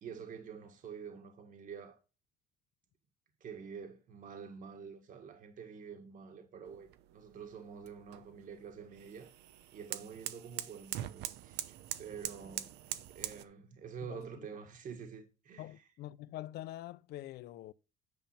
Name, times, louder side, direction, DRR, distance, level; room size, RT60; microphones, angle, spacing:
voice 1, 0.0-2.0 3.4-9.3 9.7-15.8, right 6 dB, 50° right, 1.8 m, -48 dB
sound 1, 6.7-13.4, right 13 dB, 90° right, 0.9 m, -44 dB
voice 2, 14.0-14.5 15.6-17.7, left 14 dB, 75° left, 0.6 m, -45 dB
9.4 x 5.4 x 5.8 m
cardioid pair, 110°, 17 cm